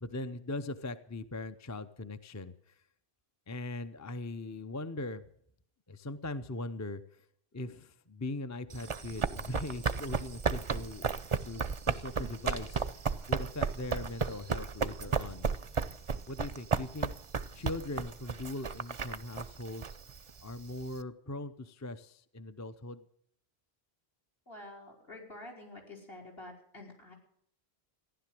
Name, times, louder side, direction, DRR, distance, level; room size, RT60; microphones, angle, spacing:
voice 1, 0.0-2.7 3.5-5.2 5.9-7.0 7.5-11.1 11.4-15.5 16.3-17.1 17.5-20.0 20.4-23.0, left 2 dB, 20° left, 10 dB, 0.6 m, -40 dB
Run, 8.7-21.0, right 5 dB, 35° right, 0.6 m, -34 dB
voice 2, 24.5-27.1, left 1 dB, 65° left, 1 dB, 4.6 m, -48 dB
15.5 x 11.0 x 7.6 m, 0.67 s
omnidirectional pair, 1.1 m